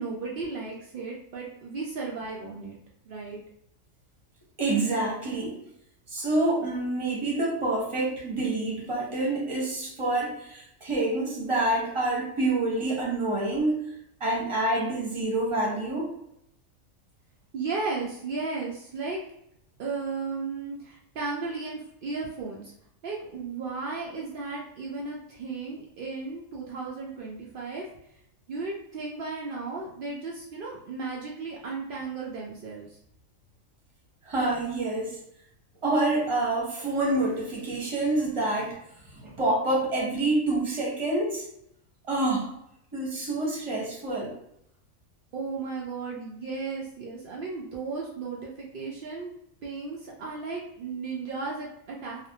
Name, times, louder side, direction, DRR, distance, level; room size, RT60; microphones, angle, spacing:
voice 1, 0.0-2.8 3.1-3.4 17.5-19.2 19.8-22.7 23.0-27.8 28.5-33.0 45.3-49.3 49.6-52.3, right 4 dB, 80° right, -3 dB, 0.4 m, -35 dB
voice 2, 4.6-5.6 6.1-13.8 14.2-16.1 34.2-35.2 35.8-38.7 39.1-41.4 42.1-42.5 42.9-44.3, right 2 dB, 30° right, -3 dB, 0.7 m, -27 dB
2.5 x 2.0 x 2.7 m, 0.76 s
omnidirectional pair, 1.4 m